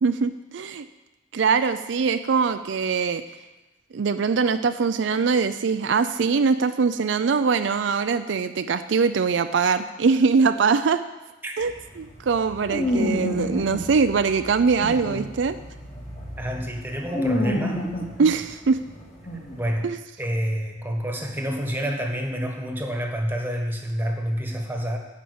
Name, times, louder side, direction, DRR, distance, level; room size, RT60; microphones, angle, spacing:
voice 1, 0.0-0.8 1.3-3.2 3.9-11.0 11.6-15.6 18.2-18.8 19.8-20.0, right 5 dB, 70° right, 10 dB, 0.4 m, -22 dB
sound 1, 11.6-19.8, left 1 dB, 35° left, 2.2 m, -30 dB
voice 2, 16.4-17.8 19.6-19.9 20.2-25.0, equal, 10° right, 2 dB, 1.4 m, -28 dB
11.0 x 5.7 x 8.6 m, 1.1 s
head